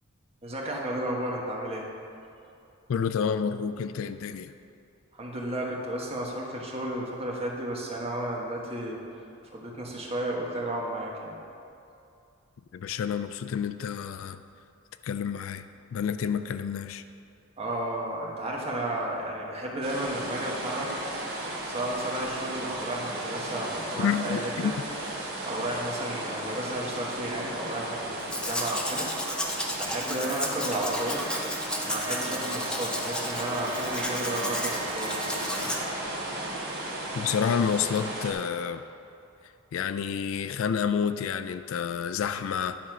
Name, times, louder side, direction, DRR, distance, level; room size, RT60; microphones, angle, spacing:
voice 1, 0.4-1.9 5.1-9.0 9.5-11.4 17.6-20.9 21.7-24.7 25.4-29.1 29.8-31.3 31.8-35.7, right 1 dB, 30° right, -3 dB, 1.3 m, -33 dB
voice 2, 2.9-4.5 12.7-14.4 15.0-17.0 24.0-24.7 37.1-38.8 39.7-42.8, left 7 dB, 75° left, 12 dB, 0.3 m, -29 dB
sound 1, 19.8-38.3, right 1 dB, 50° right, 1.5 m, -35 dB
Domestic sounds home sounds, 28.2-35.8, left 1 dB, 5° left, 0.6 m, -33 dB
sound 2, 30.4-35.9, right 1 dB, 90° right, 1.1 m, -41 dB
10.5 x 4.2 x 6.1 m, 2.6 s
head